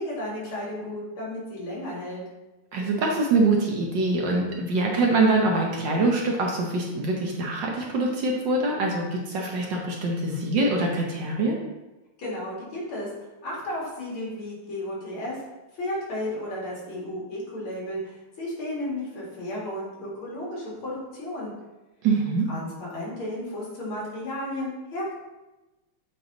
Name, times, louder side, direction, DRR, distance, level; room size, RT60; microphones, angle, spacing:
voice 1, 0.0-2.2 12.2-13.1 13.4-15.4 15.7-21.5 22.5-25.1, left 1 dB, 70° left, -5 dB, 2.9 m, -33 dB
voice 2, 2.7-11.6 22.0-22.5, right 2 dB, 65° right, 0 dB, 1.4 m, -24 dB
7.9 x 3.7 x 3.8 m, 1.1 s
omnidirectional pair, 2.4 m